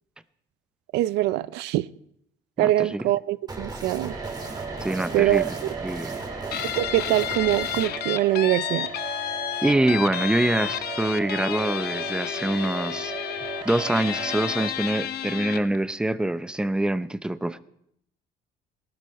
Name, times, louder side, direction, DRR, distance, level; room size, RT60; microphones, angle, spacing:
voice 1, 0.9-1.9 2.6-4.1 5.1-5.5 6.8-8.9, right 15 dB, 85° right, 0.5 m, -23 dB
voice 2, 2.6-3.0 4.8-5.5 5.8-6.2 9.6-13.1 13.6-17.6, right 1 dB, 5° right, 0.6 m, -25 dB
sound 1, 3.5-7.9, right 2 dB, 25° right, 2.5 m, -37 dB
sound 2, 4.1-14.7, right 5 dB, 50° right, 2.9 m, -37 dB
Guitar, 6.5-15.8, left 11 dB, 70° left, 0.8 m, -31 dB
18.0 x 12.0 x 4.3 m
cardioid pair, 110°, 17 cm